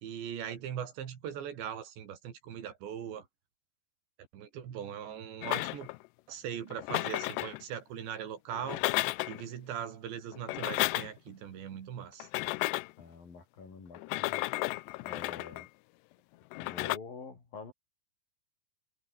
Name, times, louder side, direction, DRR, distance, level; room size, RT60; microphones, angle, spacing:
voice 1, 0.0-3.3 4.3-5.9 6.3-8.8 9.3-12.3, right 9 dB, 90° right, 5.3 m, -40 dB
sound 1, 5.4-6.1 6.7-7.6 8.5-9.4 10.3-11.3 12.2-13.0 13.9-15.7 16.5-17.0, left 23 dB, 85° left, 2.7 m, -33 dB
voice 2, 13.0-14.4 15.0-15.7 16.6-17.7, left 5 dB, 55° left, 7.1 m, -47 dB
omnidirectional pair, 4.9 m